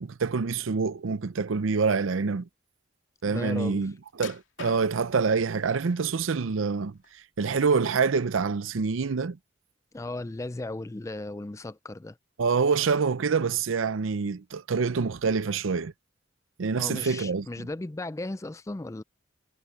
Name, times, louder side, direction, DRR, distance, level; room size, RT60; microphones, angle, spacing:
voice 1, 0.0-2.5 3.2-3.9 4.2-7.0 7.4-9.4 12.4-15.9 16.6-17.5, right 5 dB, 80° right, 0.6 m, -26 dB
voice 2, 3.2-3.9 9.9-12.2 16.8-19.0, left 2 dB, 15° left, 0.4 m, -36 dB
sound 1, 4.2-5.2 5.9-6.5 6.9-7.9 8.2-8.4 8.9-9.0, left 6 dB, 75° left, 2.6 m, -45 dB
head